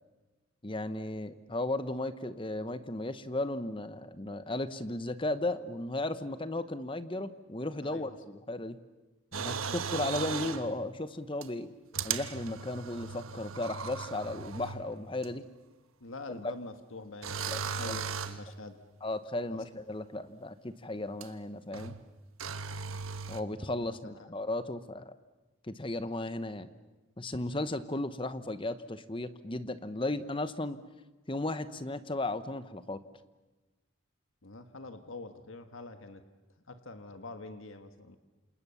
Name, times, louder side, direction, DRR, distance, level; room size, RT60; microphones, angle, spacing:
voice 1, 0.6-8.8 9.3-11.7 12.0-15.4 17.5-17.9 19.0-22.0 23.3-25.1 25.7-26.7 27.2-30.8 31.3-33.0, left 2 dB, 25° left, 12 dB, 1.0 m, -35 dB
voice 2, 7.8-8.2 16.0-18.8 19.5-19.6 23.7-24.3 34.4-36.2 36.7-38.2, left 2 dB, 70° left, 8 dB, 1.6 m, -45 dB
sound 1, 9.3-10.7 11.4-11.5 11.9-14.9 15.2-15.3 17.2-18.5 21.2-21.3 21.7-22.1 22.4-23.4, right 6 dB, 85° right, 1.3 m, -37 dB
28.0 x 27.0 x 7.1 m, 1.2 s
head